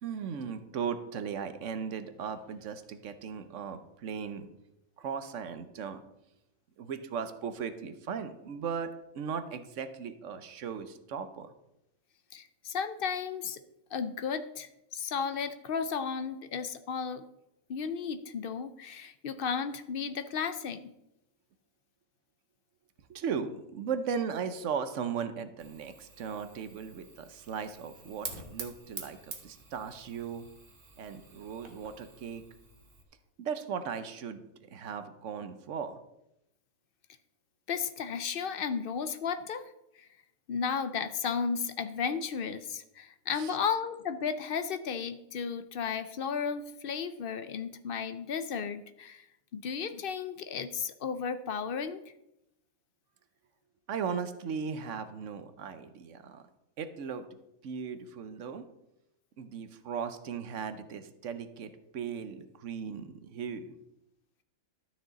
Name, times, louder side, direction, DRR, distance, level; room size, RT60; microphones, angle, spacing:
voice 1, 0.0-4.5 5.0-6.0 6.8-11.5 23.1-30.5 31.0-32.5 33.4-36.0 43.3-43.6 53.9-56.4 56.8-57.3 57.6-58.7 59.4-63.7, right 6 dB, 65° right, 11 dB, 1.0 m, -37 dB
voice 2, 12.3-13.6 13.9-17.2 17.7-20.9 37.7-39.6 40.0-40.1 40.5-49.2 49.5-52.0, left 6 dB, 60° left, 11 dB, 0.6 m, -34 dB
Fire, 25.6-33.0, right 4 dB, 40° right, 1.3 m, -47 dB
12.5 x 6.4 x 4.0 m, 0.86 s
omnidirectional pair, 1.4 m